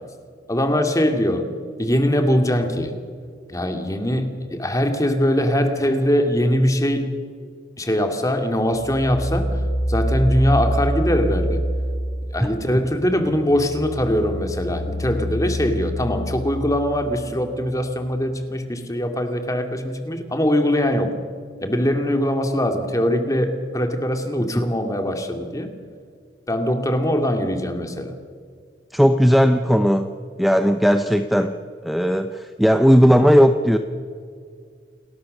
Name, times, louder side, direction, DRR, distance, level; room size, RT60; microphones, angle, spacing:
voice 1, 0.5-1.5 1.8-2.9 3.5-7.2 7.8-9.5 9.9-11.6 12.3-21.1 21.6-25.7 26.5-28.1, equal, 20° left, 6 dB, 2.4 m, -22 dB
sound 1, 8.8-12.6 13.0-17.6, equal, 75° left, 7.5 m, -26 dB
voice 2, 28.9-30.1 30.4-33.8, equal, ahead, 7 dB, 0.7 m, -17 dB
29.0 x 20.5 x 6.6 m, 2.1 s
head